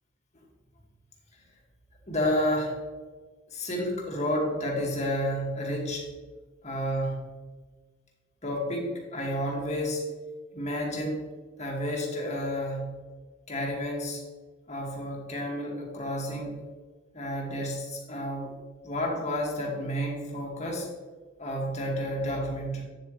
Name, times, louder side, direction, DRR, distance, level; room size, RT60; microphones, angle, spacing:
voice 1, 2.1-2.8 3.5-6.1 6.6-7.3 8.4-10.0 10.5-11.2 11.6-13.0 13.5-14.2 14.7-16.6 17.1-18.5 18.8-20.9 21.4-22.8, equal, 35° left, -1 dB, 2.3 m, -30 dB
9.4 x 7.8 x 3.3 m, 1.4 s
head